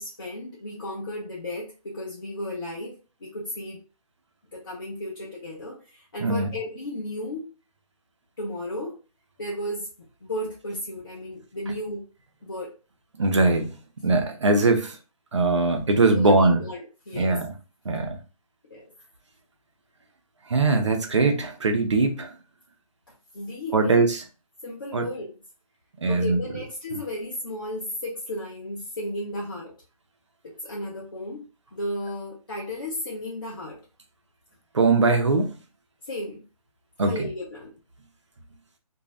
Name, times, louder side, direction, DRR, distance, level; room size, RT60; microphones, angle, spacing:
voice 1, 0.0-3.8 4.5-7.4 8.4-9.0 9.4-9.9 10.2-12.1 12.4-12.7 16.2-17.4 17.9-18.1 18.7-18.8 23.3-24.0 24.6-25.3 26.1-29.7 30.4-31.4 31.7-33.8 36.0-36.4 37.0-37.7, left 1 dB, 35° left, 0.7 m, -34 dB
voice 2, 13.2-13.7 14.0-15.0 15.3-16.6 17.2-17.5 17.9-18.2 20.5-22.3 23.7-24.2 24.9-25.0 26.0-26.4 34.7-35.5 37.0-37.3, right 3 dB, 50° right, 0.6 m, -21 dB
2.6 x 2.1 x 3.1 m
hypercardioid pair, 175°, 19 cm